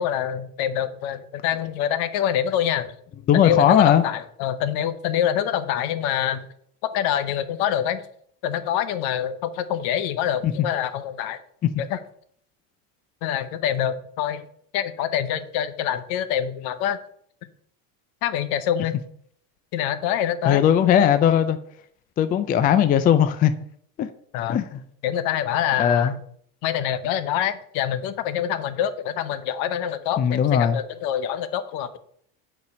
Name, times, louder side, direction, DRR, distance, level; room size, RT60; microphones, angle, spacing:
voice 1, 0.0-3.0 3.3-6.5 6.8-8.1 8.4-11.4 11.8-12.0 13.2-14.5 14.7-17.0 18.2-19.0 19.7-20.6 24.3-24.6 25.0-26.2 26.6-32.0, left 10 dB, 65° left, 0.9 m, -25 dB
voice 2, 3.3-4.0 20.5-21.6 22.2-23.5 24.0-24.1 24.5-24.6 25.8-26.1 30.2-30.8, left 9 dB, 25° left, 0.4 m, -18 dB
8.1 x 5.1 x 5.3 m
cardioid pair, 140°, 40 cm